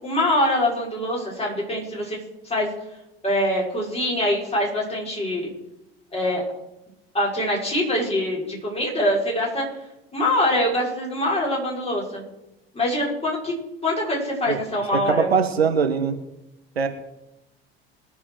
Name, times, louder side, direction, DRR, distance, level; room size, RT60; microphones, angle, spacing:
voice 1, 0.0-2.2 2.4-2.7 3.2-5.5 6.1-6.4 7.1-9.7 10.1-12.2 12.7-13.5 13.8-15.3, left 1 dB, 20° left, -3 dB, 5.8 m, -24 dB
voice 2, 14.9-16.2 16.7-16.9, right 6 dB, 80° right, 7 dB, 1.3 m, -21 dB
21.5 x 7.4 x 4.9 m, 0.92 s
figure-of-eight pair, 70°, 31 cm